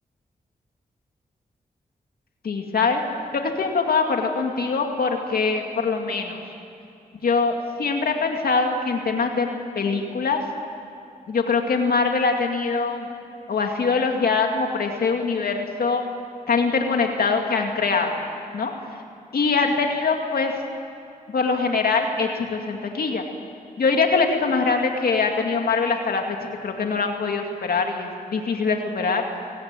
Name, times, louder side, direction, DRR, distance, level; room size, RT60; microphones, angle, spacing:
voice 1, 2.4-3.0 3.3-6.4 7.2-9.5 9.7-10.4 11.3-13.1 13.5-16.0 16.5-18.2 18.5-18.7 19.3-20.6 21.3-23.2 23.8-26.2 26.6-29.2, left 4 dB, 85° left, 3 dB, 2.4 m, -23 dB
29.5 x 18.5 x 9.1 m, 2.6 s
cardioid pair, 70°, 15 cm